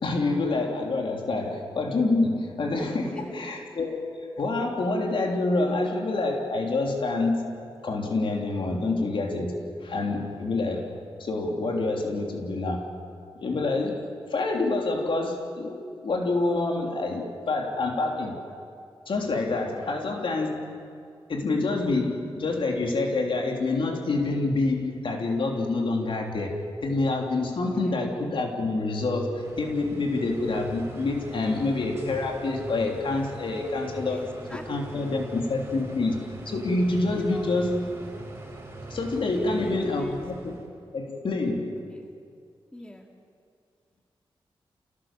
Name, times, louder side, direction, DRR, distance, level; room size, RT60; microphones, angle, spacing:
voice 1, 0.0-4.0 4.4-7.6 7.8-10.9 11.2-12.9 13.4-18.4 19.1-20.7 21.3-37.8 38.9-40.5 40.9-41.8, left 2 dB, 70° left, 1 dB, 3.3 m, -27 dB
voice 2, 3.0-3.5 27.7-28.0 34.1-34.6 34.9-35.1 37.1-37.5 39.3-40.3 41.9-42.1 42.7-43.1, left 1 dB, 10° left, 2 dB, 2.5 m, -40 dB
sound 1, 29.3-40.7, right 2 dB, 30° right, 5.2 m, -41 dB
28.5 x 17.5 x 7.5 m, 2.3 s
wide cardioid pair, 85°, 9 cm